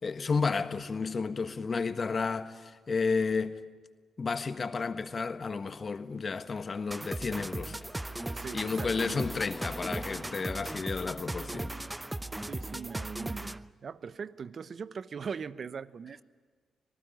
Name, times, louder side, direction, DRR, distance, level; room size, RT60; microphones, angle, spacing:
voice 1, 0.0-3.6 4.2-7.8 8.5-11.8, left 4 dB, 45° left, 1.5 m, -32 dB
Car passing by / Traffic noise roadway noise, 6.4-13.3, left 1 dB, 15° left, 1.5 m, -49 dB
sound 1, 6.9-13.7, right 1 dB, 15° right, 0.8 m, -37 dB
voice 2, 8.3-9.3 12.4-16.2, right 6 dB, 55° right, 0.9 m, -40 dB
26.5 x 19.5 x 9.4 m
hypercardioid pair, 40°, 0 cm